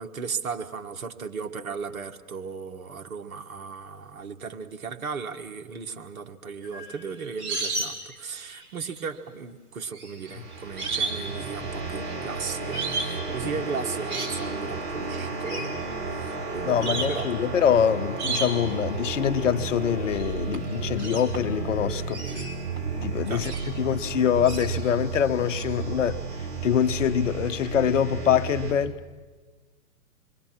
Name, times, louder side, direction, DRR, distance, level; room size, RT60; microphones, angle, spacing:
voice 1, 0.0-15.8 16.0-17.3 23.3-23.5, right 5 dB, 65° right, 1.8 m, -36 dB
sound 1, 6.6-8.1 8.4-9.0 9.9-11.3 11.5-12.2 12.7-13.2 13.8-14.4 15.5-15.7 16.3-16.4 16.8-17.2 18.2-18.7 20.1-20.3 20.5-21.7 22.1-23.7 24.4-24.9 25.5-25.6, right 3 dB, 25° right, 4.4 m, -33 dB
sound 2, 10.2-28.7, right 4 dB, 40° right, 6.2 m, -33 dB
voice 2, 16.6-22.4 23.0-26.2 26.6-29.0, left 9 dB, 55° left, 1.0 m, -24 dB
26.5 x 22.5 x 6.2 m
figure-of-eight pair, 125°, 45 cm